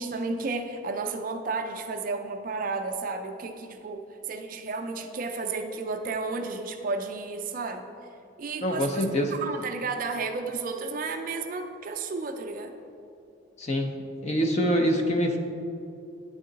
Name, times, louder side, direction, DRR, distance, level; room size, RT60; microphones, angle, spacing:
voice 1, 0.0-7.9 8.4-9.0 9.3-12.7, right 3 dB, 45° right, 6 dB, 0.3 m, -32 dB
voice 2, 8.6-9.3 13.6-13.9 14.2-15.4, equal, 35° left, 3 dB, 0.5 m, -25 dB
9.2 x 3.7 x 3.9 m, 2.6 s
head